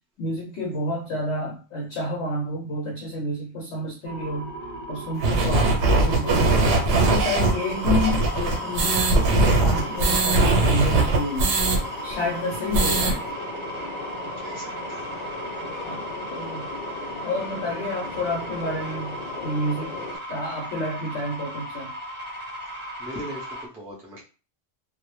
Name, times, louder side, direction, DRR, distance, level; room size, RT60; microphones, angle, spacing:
voice 1, 0.2-4.5 4.9-6.7 7.1-11.6 12.0-13.2 15.8-16.7 17.2-19.9 20.3-21.9, left 1 dB, 90° left, -2 dB, 0.9 m, -29 dB
sound 1, 4.0-23.6, right 1 dB, 40° right, 0.7 m, -36 dB
sound 2, 5.2-11.8 12.1-12.2 12.5-13.1, right 2 dB, 85° right, 0.9 m, -20 dB
Train, 6.6-20.2, left 2 dB, 55° left, 0.8 m, -38 dB
voice 2, 14.4-15.3 23.0-24.2, equal, 5° right, -4 dB, 0.4 m, -39 dB
2.1 x 2.0 x 3.0 m, 0.36 s
omnidirectional pair, 1.1 m